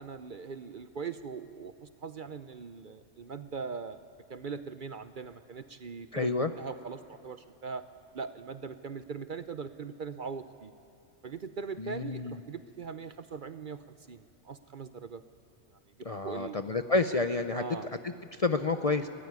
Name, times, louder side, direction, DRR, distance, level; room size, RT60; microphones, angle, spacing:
voice 1, 0.0-4.0 4.3-7.8 8.1-10.7 11.2-13.8 14.1-15.2 16.2-16.6 17.5-17.9, right 5 dB, 50° right, 11 dB, 0.7 m, -40 dB
voice 2, 6.1-6.5 11.8-12.4 16.1-17.6 18.0-18.1 18.4-19.1, left 3 dB, 40° left, 8 dB, 0.6 m, -29 dB
29.5 x 13.5 x 9.6 m, 2.9 s
omnidirectional pair, 1.3 m